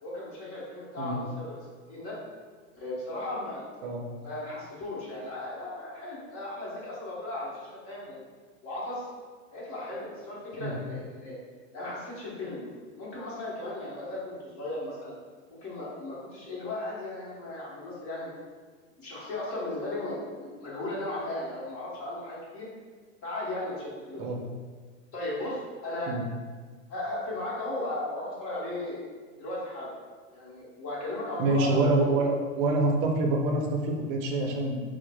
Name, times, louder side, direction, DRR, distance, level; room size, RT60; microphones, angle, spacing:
voice 1, 0.0-1.6 1.9-2.2 2.7-3.7 4.2-8.2 8.6-9.1 9.5-11.4 11.7-15.1 15.5-18.3 19.0-22.7 23.2-24.2 25.1-26.1 26.9-29.0 29.4-29.9 30.3-32.1, left 1 dB, 40° left, -6 dB, 1.1 m, -36 dB
voice 2, 31.4-34.8, right 2 dB, 40° right, 1 dB, 0.5 m, -26 dB
4.4 x 2.1 x 2.2 m, 1.5 s
hypercardioid pair, 130°, 39 cm